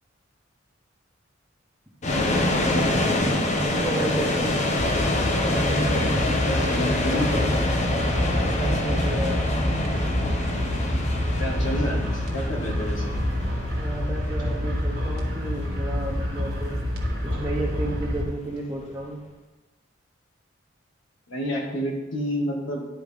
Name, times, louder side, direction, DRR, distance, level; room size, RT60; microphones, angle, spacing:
sound 1, 2.0-19.0, left 1 dB, 35° left, 0.8 m, -26 dB
voice 1, 3.7-4.6 8.5-9.4 13.8-16.8 17.2-19.2, right 2 dB, 10° right, -6 dB, 1.0 m, -32 dB
sound 2, 4.8-18.2, left 1 dB, 55° right, 1.4 m, -27 dB
voice 2, 6.4-7.5 11.4-13.2 21.3-22.8, equal, 75° left, -1 dB, 1.8 m, -29 dB
11.0 x 4.7 x 3.6 m, 1.2 s
head